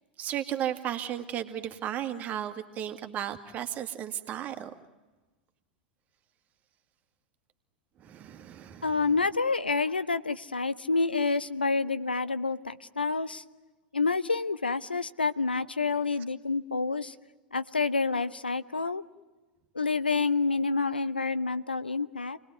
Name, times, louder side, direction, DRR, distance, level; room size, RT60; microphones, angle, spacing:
voice 1, 0.2-4.7 8.0-9.0, right 10 dB, 30° right, 6 dB, 2.3 m, -34 dB
voice 2, 8.8-13.4 13.9-17.1 17.5-19.0 19.7-22.4, left 4 dB, 80° left, 14 dB, 0.9 m, -28 dB
29.0 x 20.5 x 9.5 m, 1.2 s
figure-of-eight pair, 90°, 5 cm